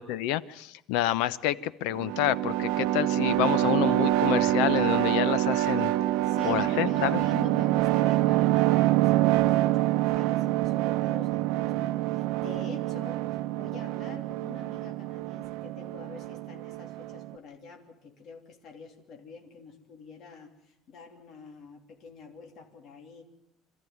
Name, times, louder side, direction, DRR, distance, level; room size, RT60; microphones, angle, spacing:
voice 1, 0.0-5.9 6.4-7.2, left 13 dB, 80° left, 17 dB, 0.9 m, -28 dB
sound 1, 1.9-17.3, right 15 dB, 85° right, 0.8 m, -26 dB
voice 2, 6.2-13.2 13.6-23.2, left 6 dB, 45° left, 3 dB, 3.1 m, -46 dB
26.5 x 14.0 x 9.5 m, 0.81 s
cardioid pair, 170°, 0 cm